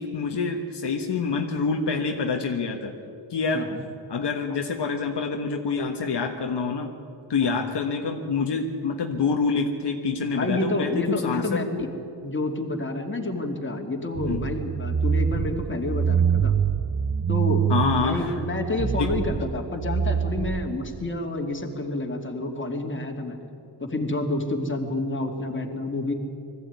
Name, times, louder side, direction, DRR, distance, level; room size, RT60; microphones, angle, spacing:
voice 1, 0.0-2.9 3.3-3.7 4.1-6.9 7.3-11.9 14.3-14.5 17.7-18.4 19.0-19.1, left 4 dB, 60° left, 3 dB, 1.5 m, -26 dB
voice 2, 3.5-3.8 7.4-7.6 10.4-11.9 12.2-16.5 17.3-17.7 18.0-23.4 23.8-26.1, left 2 dB, 25° left, 2 dB, 2.5 m, -29 dB
sound 1, 14.2-21.1, right 7 dB, 25° right, 0.5 m, -25 dB
20.5 x 15.0 x 9.5 m, 2.6 s
cardioid pair, 90°, 46 cm